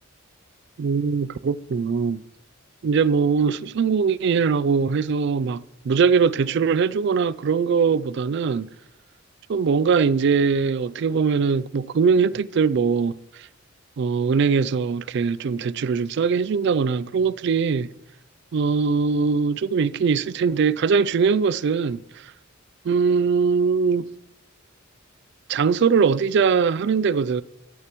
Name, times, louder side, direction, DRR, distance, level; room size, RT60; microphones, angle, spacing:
voice 1, 0.8-2.2 2.8-8.7 9.5-13.1 14.0-17.9 18.5-22.0 22.8-24.1 25.5-27.4, right 5 dB, 55° right, 0.3 m, -21 dB
14.0 x 9.6 x 3.0 m
head